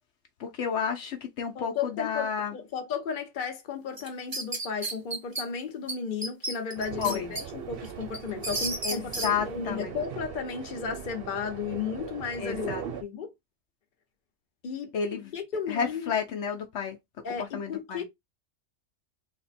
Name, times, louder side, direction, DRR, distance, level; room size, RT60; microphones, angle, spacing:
voice 1, 0.4-2.5 7.0-7.3 8.8-9.9 12.4-12.8 14.9-15.3 15.7-17.0 17.4-18.0, left 7 dB, 70° left, 0.9 m, -31 dB
voice 2, 1.5-12.7 13.0-13.3 14.6-14.9 15.3-16.0 17.2-18.0, left 6 dB, 45° left, 0.9 m, -34 dB
sound 1, 4.0-5.4 5.9-6.0 6.2-7.4 7.8-9.3, right 2 dB, 25° right, 0.6 m, -32 dB
sound 2, 6.7-13.0, right 8 dB, 60° right, 0.7 m, -40 dB
3.4 x 2.1 x 4.1 m
omnidirectional pair, 1.3 m